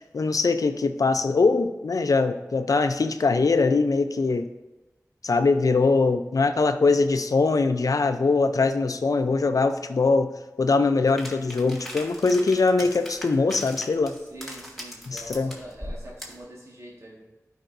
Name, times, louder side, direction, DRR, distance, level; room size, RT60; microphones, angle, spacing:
voice 1, 0.1-4.5 5.2-10.3 10.6-14.1 15.1-15.5, left 3 dB, 85° left, 9 dB, 0.5 m, -22 dB
sound 1, 11.2-16.4, equal, ahead, 1.9 m, -40 dB
voice 2, 14.3-17.2, right 1 dB, 55° right, -4 dB, 1.6 m, -44 dB
12.0 x 5.1 x 2.6 m, 1.1 s
wide cardioid pair, 40°, 6 cm